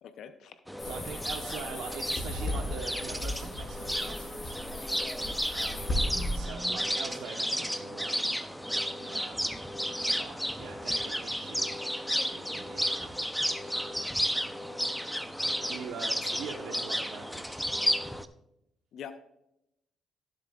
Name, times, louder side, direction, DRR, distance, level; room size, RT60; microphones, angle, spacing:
voice 1, 0.0-0.6 9.0-9.3 16.2-16.3 18.9-19.1, left 8 dB, 75° left, 10 dB, 0.7 m, -45 dB
sound 1, 0.7-18.3, equal, ahead, 0.6 m, -33 dB
sound 2, 0.8-6.4, left 1 dB, 45° left, 3.6 m, -36 dB
voice 2, 0.8-4.6 5.5-6.0 6.3-8.2 9.1-9.5 10.2-11.8 12.3-14.0 14.2-14.5 15.6-17.6, right 6 dB, 90° right, 0 dB, 1.0 m, -44 dB
16.0 x 7.7 x 2.4 m, 0.82 s
cardioid pair, 90°, 0 cm